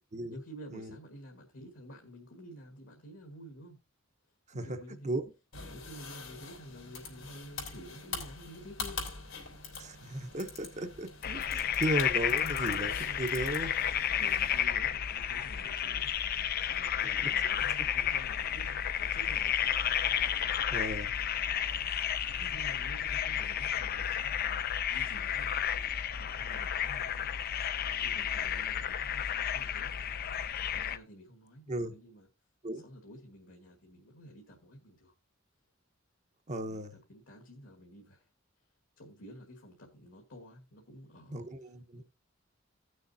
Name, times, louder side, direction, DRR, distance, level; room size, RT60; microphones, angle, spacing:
voice 1, 0.3-3.8 4.5-5.2 5.7-9.2 14.1-16.4 16.7-19.8 21.6-21.9 22.5-24.6 24.9-27.7 28.0-30.0 30.7-32.3 32.7-35.1 36.7-38.3 39.0-41.5 41.9-42.0, equal, 65° left, 1.6 m, -51 dB
sound 1, 5.5-14.6, left 4 dB, 85° left, 3.0 m, -44 dB
voice 2, 9.7-13.7 17.0-17.3 20.7-21.1 22.4-22.5 31.7-31.9 32.6-32.8 36.5-36.9 41.3-42.0, right 1 dB, 35° right, 0.9 m, -35 dB
sound 2, 11.2-31.0, left 9 dB, 50° left, 0.5 m, -32 dB
16.5 x 6.4 x 2.7 m
head